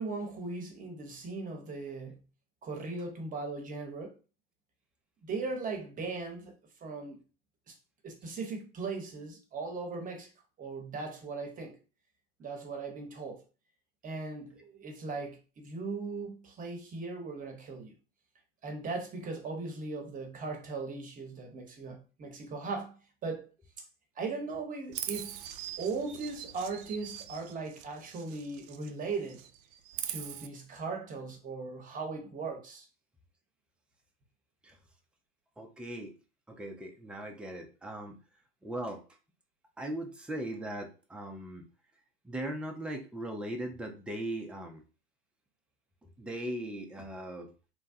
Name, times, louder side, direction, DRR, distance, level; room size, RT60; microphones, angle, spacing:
voice 1, 0.0-2.3 2.6-4.2 5.2-6.5 6.8-7.2 7.7-7.8 8.0-10.3 10.6-11.8 12.4-13.4 14.0-17.9 18.6-23.5 24.2-25.4 25.8-29.5 30.1-32.9, right 3 dB, 25° right, 0.9 m, -38 dB
Chirp tweet, 24.9-28.9 29.2-30.5, right 11 dB, 60° right, 0.4 m, -42 dB
voice 2, 35.6-36.1 36.5-38.1 38.6-39.0 39.8-41.6 42.2-44.8 46.2-47.5, right 1 dB, 5° right, 0.5 m, -39 dB
3.1 x 2.2 x 2.7 m
hypercardioid pair, 95°, 30 cm